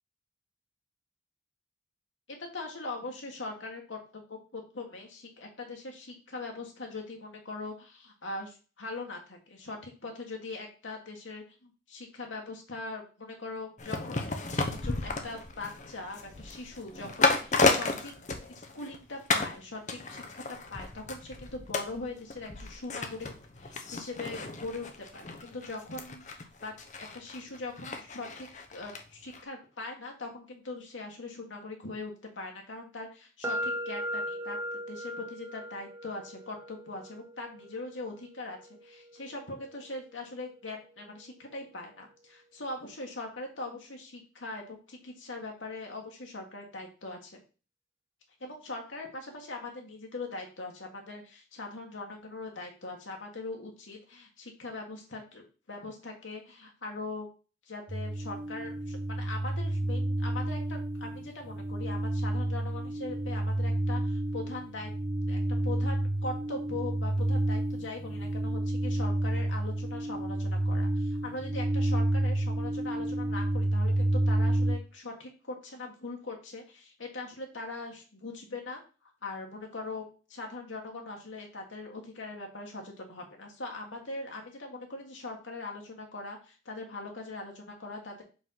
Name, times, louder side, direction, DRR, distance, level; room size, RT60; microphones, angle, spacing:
voice 1, 2.3-14.3 14.7-18.1 18.5-23.3 23.6-24.9 25.1-34.6 34.9-47.4 48.4-57.3 57.7-64.9 65.3-78.8 79.2-80.0 80.3-88.2, left 3 dB, 90° left, 1 dB, 1.6 m, -41 dB
sound 1, 13.8-19.0 19.3-19.6 19.9-29.0 29.3-29.4, left 3 dB, 40° left, 0.8 m, -32 dB
sound 2, 33.4-41.3, equal, 15° right, 0.6 m, -40 dB
sound 3, 57.9-74.7, right 1 dB, 45° right, 1.5 m, -30 dB
5.3 x 3.7 x 5.7 m, 0.35 s
head